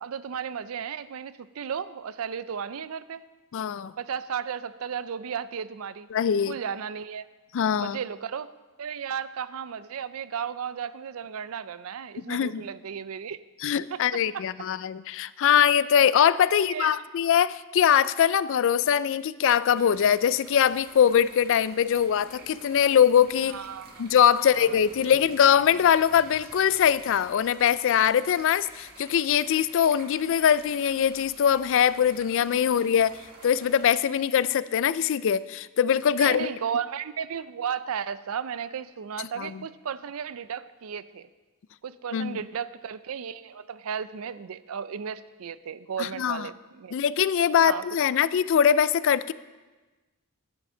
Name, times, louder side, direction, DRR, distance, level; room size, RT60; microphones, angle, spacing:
voice 1, 0.0-3.2 4.0-6.1 6.5-7.3 7.8-8.5 8.8-13.4 13.9-14.0 14.3-14.4 16.5-17.0 23.5-24.1 24.3-25.1 32.6-32.7 36.1-41.3 41.8-46.9 47.6-47.8, right 7 dB, 75° right, 15 dB, 0.4 m, -34 dB
voice 2, 3.5-3.9 6.1-6.5 7.5-8.0 12.3-12.6 13.6-23.6 24.0-33.2 33.4-36.5 39.4-39.6 42.1-42.4 46.0-46.5 46.9-49.3, left 8 dB, 60° left, 17 dB, 0.3 m, -22 dB
sound 1, 19.8-33.9, right 2 dB, 45° right, 1.6 m, -50 dB
13.5 x 9.8 x 3.8 m, 1.2 s
head